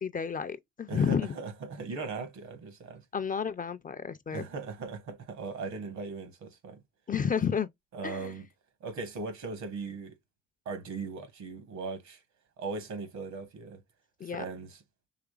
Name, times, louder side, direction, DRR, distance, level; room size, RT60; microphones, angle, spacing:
voice 1, 0.0-1.4 3.1-4.4 7.1-7.7 8.0-8.3 14.2-14.4, left 7 dB, 30° left, 0.4 m, -31 dB
voice 2, 0.9-3.0 4.3-6.8 7.9-8.5 8.8-10.2 10.6-12.2 12.6-13.8 14.2-14.8, right 4 dB, 70° right, 1.3 m, -39 dB
4.9 x 3.1 x 2.3 m
cardioid pair, 90°, 30 cm